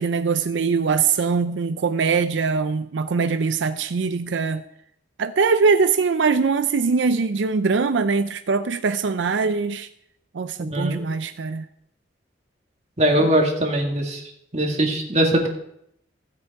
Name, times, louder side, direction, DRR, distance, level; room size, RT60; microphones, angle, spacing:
voice 1, 0.0-4.6 5.2-9.9 10.3-11.7, right 5 dB, 90° right, 11 dB, 0.5 m, -22 dB
voice 2, 10.6-11.0 13.0-14.2 14.5-15.5, right 1 dB, 35° right, 1 dB, 2.0 m, -21 dB
16.0 x 7.9 x 4.7 m, 0.76 s
head